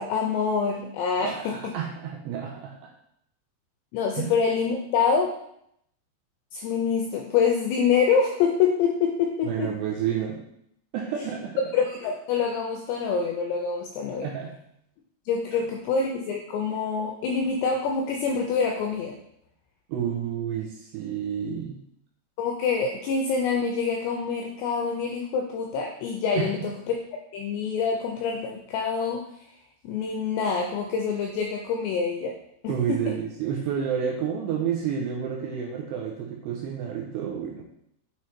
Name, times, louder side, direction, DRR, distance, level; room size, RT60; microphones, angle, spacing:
voice 1, 0.0-1.7 3.9-5.3 6.5-9.7 11.7-14.3 15.3-19.2 22.4-27.0 27.3-29.2 29.8-32.4 32.6-33.0, left 5 dB, 85° left, 1 dB, 2.4 m, -26 dB
voice 2, 1.2-2.9 4.2-4.3 9.5-10.5 10.9-11.6 14.2-14.6 19.9-21.8 26.4-26.7 32.7-37.6, right 8 dB, 85° right, -2 dB, 2.5 m, -30 dB
7.4 x 3.2 x 4.3 m, 0.74 s
omnidirectional pair, 5.5 m